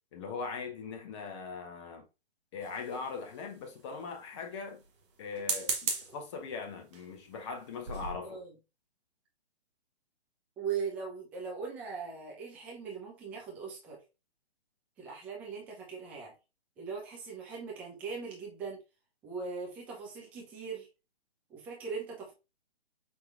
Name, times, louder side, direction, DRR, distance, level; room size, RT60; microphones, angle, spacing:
voice 1, 0.1-2.0 2.5-4.8 5.2-8.4, left 5 dB, 30° left, 0.9 m, -40 dB
sound 1, 2.6-3.4 5.3-6.2 6.9-7.1 7.6-7.7 7.9-8.2, right 5 dB, 30° right, 0.9 m, -35 dB
voice 2, 10.6-14.0 15.0-16.3 16.8-18.8 19.2-20.9 21.5-22.3, right 5 dB, 5° right, 0.4 m, -40 dB
5.6 x 2.9 x 2.4 m
figure-of-eight pair, 130°, 32 cm